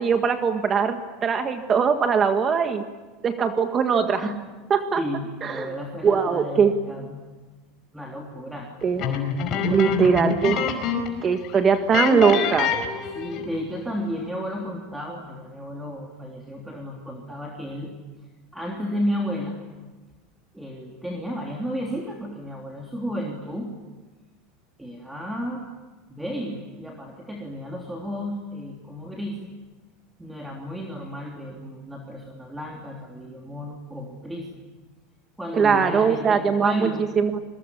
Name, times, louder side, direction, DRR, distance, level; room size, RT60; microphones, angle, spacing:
voice 1, 0.0-2.8 3.2-4.3 4.7-5.0 5.4-5.7 6.0-6.7 8.8-9.0 9.6-10.6 11.2-12.8 35.5-36.9 37.2-37.4, right 6 dB, 30° right, 7 dB, 1.7 m, -21 dB
voice 2, 4.9-7.2 7.9-8.7 9.5-10.0 13.0-17.9 18.5-19.6 20.5-23.7 24.8-25.6 26.1-29.4 30.2-34.6 35.4-37.1, equal, 5° right, 0 dB, 3.3 m, -33 dB
sound 1, 9.0-11.2 11.4-11.6 11.9-13.6, left 7 dB, 45° left, 4.9 m, -26 dB
27.5 x 22.0 x 8.5 m, 1.3 s
supercardioid pair, 130°, 0 cm